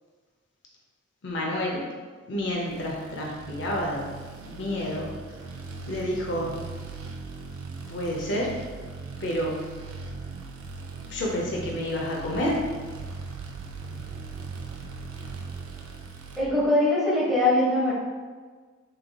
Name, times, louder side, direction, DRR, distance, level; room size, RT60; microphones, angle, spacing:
voice 1, 1.2-1.8 2.3-4.1 4.5-5.1 5.9-6.6 7.9-8.5 9.2-9.7 11.1-12.6, left 1 dB, 55° left, -2 dB, 0.5 m, -29 dB
sound 1, 2.6-16.4, right 4 dB, 85° right, 0.4 m, -39 dB
voice 2, 16.4-17.9, left 1 dB, ahead, -8 dB, 0.8 m, -22 dB
3.5 x 3.2 x 2.2 m, 1.5 s
head